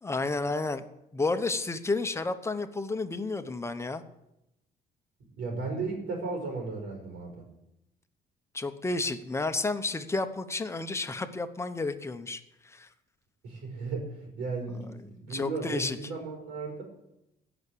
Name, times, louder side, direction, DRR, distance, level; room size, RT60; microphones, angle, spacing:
voice 1, 0.0-0.8 1.1-4.0 8.5-12.9 15.3-16.0, left 3 dB, 15° left, 9 dB, 1.0 m, -31 dB
voice 2, 5.4-7.3 13.4-16.8, right 3 dB, 85° right, -1 dB, 4.7 m, -35 dB
16.0 x 6.1 x 8.7 m, 0.88 s
cardioid pair, 110°, 17 cm